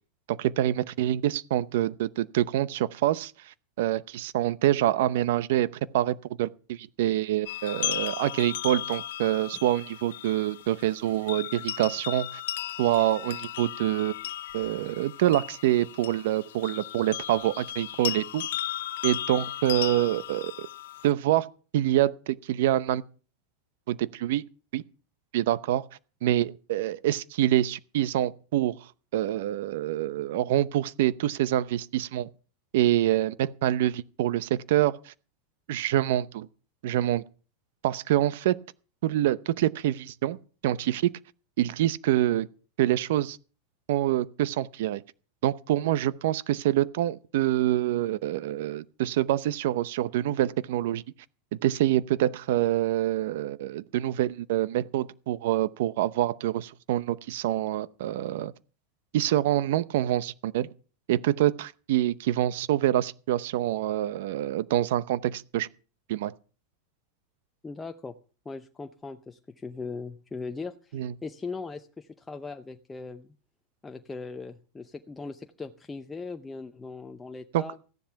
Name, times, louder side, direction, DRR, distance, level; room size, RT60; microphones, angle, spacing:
voice 1, 0.3-5.7 5.9-12.4 12.8-14.1 14.5-18.5 19.0-20.7 21.0-21.5 21.7-23.0 23.9-24.4 24.7-24.8 25.3-25.9 26.2-28.9 29.1-32.3 32.7-35.1 35.7-36.5 36.8-37.2 37.8-38.6 39.0-40.4 40.6-41.1 41.6-42.5 42.8-43.4 43.9-45.0 45.4-51.0 51.6-58.5 59.1-60.7 61.1-65.7 66.1-66.3 70.9-71.1 77.5-77.6, right 13 dB, 70° right, 0.7 m, -26 dB
sound 1, 7.5-21.1, left 13 dB, 75° left, 0.6 m, -36 dB
voice 2, 67.6-68.1 68.4-73.3 73.8-77.8, left 4 dB, 10° left, 0.7 m, -39 dB
14.5 x 10.5 x 5.8 m
supercardioid pair, 155°, 0 cm